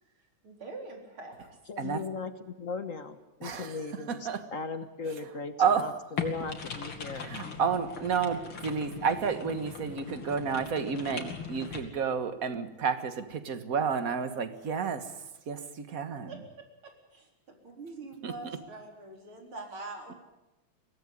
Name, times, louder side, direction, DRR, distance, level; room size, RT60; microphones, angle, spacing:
voice 1, 0.4-1.5 16.3-20.2, right 3 dB, 85° right, 2 dB, 4.9 m, -44 dB
voice 2, 1.7-7.4, left 4 dB, 45° left, 10 dB, 1.4 m, -38 dB
voice 3, 3.4-4.5 5.6-5.9 7.1-15.2 15.5-16.4 18.2-18.3, right 6 dB, 45° right, 10 dB, 1.8 m, -31 dB
sound 1, 6.2-11.8, left 6 dB, 85° left, 3.4 m, -40 dB
23.5 x 17.0 x 9.8 m, 1.0 s
omnidirectional pair, 2.3 m